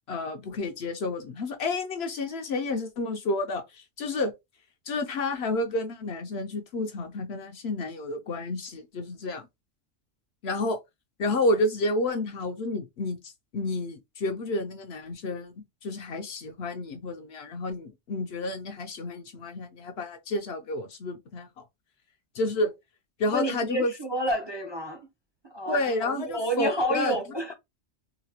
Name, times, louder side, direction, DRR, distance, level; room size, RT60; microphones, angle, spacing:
voice 1, 0.1-4.3 4.9-9.4 10.4-10.8 11.2-15.5 15.8-21.6 22.3-22.7 23.2-23.9 25.7-27.2, left 2 dB, 60° left, 0.8 m, -30 dB
voice 2, 23.3-25.1 25.5-27.5, right 1 dB, 30° right, 0.5 m, -29 dB
3.9 x 2.1 x 2.8 m
omnidirectional pair, 1.3 m